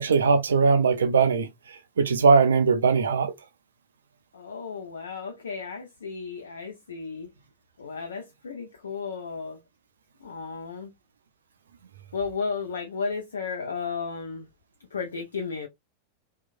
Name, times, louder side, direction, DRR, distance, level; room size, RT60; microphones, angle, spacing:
voice 1, 0.0-3.3, right 5 dB, 70° right, 0.4 m, -21 dB
voice 2, 4.3-7.3 7.8-9.6 10.2-10.9 12.1-14.5 14.9-15.7, left 5 dB, 70° left, 0.4 m, -34 dB
3.0 x 2.2 x 2.4 m
figure-of-eight pair, 90°, 0 cm